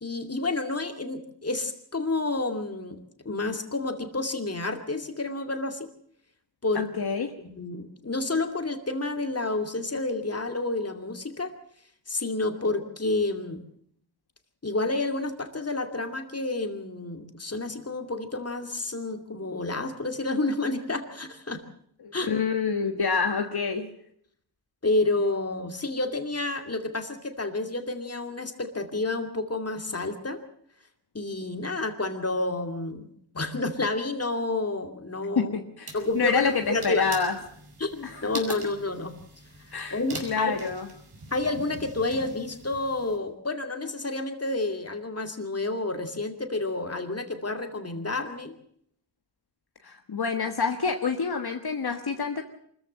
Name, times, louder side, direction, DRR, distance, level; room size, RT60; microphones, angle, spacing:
voice 1, 0.0-5.9 6.6-6.8 7.4-11.5 12.1-13.6 14.6-21.6 22.1-22.3 24.8-30.4 31.1-33.1 33.3-35.6 35.9-37.1 37.8-39.1 39.7-40.6 41.3-48.6, left 2 dB, 35° left, 6 dB, 2.5 m, -30 dB
voice 2, 6.7-7.3 22.0-23.9 35.3-37.3 38.0-38.4 39.7-40.9 49.8-52.4, left 5 dB, 60° left, 5 dB, 1.6 m, -27 dB
sound 1, 35.9-43.2, right 2 dB, 65° right, 5.3 m, -44 dB
24.5 x 14.0 x 7.6 m, 0.66 s
wide cardioid pair, 70°, 42 cm